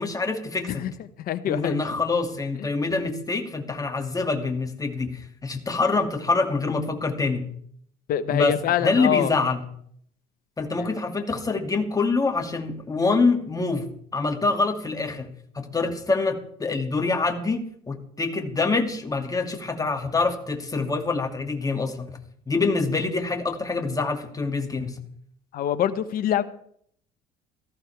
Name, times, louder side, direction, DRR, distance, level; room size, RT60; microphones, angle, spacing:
voice 1, 0.0-0.8 1.5-7.5 8.3-8.6 8.8-9.6 10.6-15.3 15.5-22.1 22.5-25.0, left 3 dB, 20° left, 4 dB, 2.5 m, -25 dB
voice 2, 0.6-1.8 2.6-2.7 8.1-9.3 10.8-10.9 25.5-26.4, left 10 dB, 60° left, 12 dB, 1.3 m, -25 dB
17.5 x 14.0 x 3.6 m, 0.65 s
supercardioid pair, 80°, 17 cm